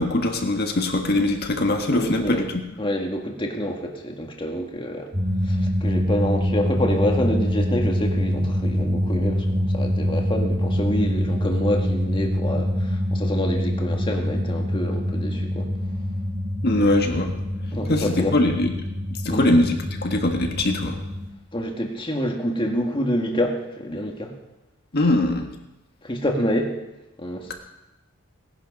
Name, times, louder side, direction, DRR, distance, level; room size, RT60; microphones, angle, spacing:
voice 1, 0.0-2.5 16.6-17.3 17.9-18.7 19.2-21.0 24.9-25.5, left 1 dB, 45° left, 3 dB, 1.6 m, -21 dB
voice 2, 1.9-2.4 2.8-5.1 5.4-15.7 17.7-18.3 19.3-19.5 21.5-24.3 26.0-26.7 27.2-27.5, equal, 25° left, 2 dB, 1.8 m, -27 dB
sound 1, 5.1-21.3, equal, 25° right, 1.5 m, -25 dB
18.0 x 11.0 x 5.4 m, 0.98 s
head